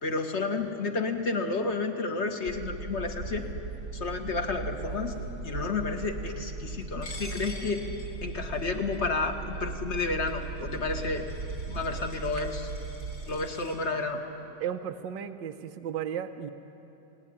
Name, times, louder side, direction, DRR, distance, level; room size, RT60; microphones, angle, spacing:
voice 1, 0.0-3.5 3.9-5.2 5.4-7.9 8.2-11.3 11.7-12.7 13.2-14.2, left 3 dB, 35° left, 5 dB, 1.9 m, -31 dB
sound 1, 2.5-13.3, right 4 dB, 50° right, 1.2 m, -38 dB
Coin (dropping), 7.0-13.8, left 1 dB, 55° left, 5.1 m, -48 dB
voice 2, 14.6-16.5, right 9 dB, 75° right, 7 dB, 1.5 m, -34 dB
27.5 x 19.0 x 9.9 m, 3.0 s
omnidirectional pair, 2.0 m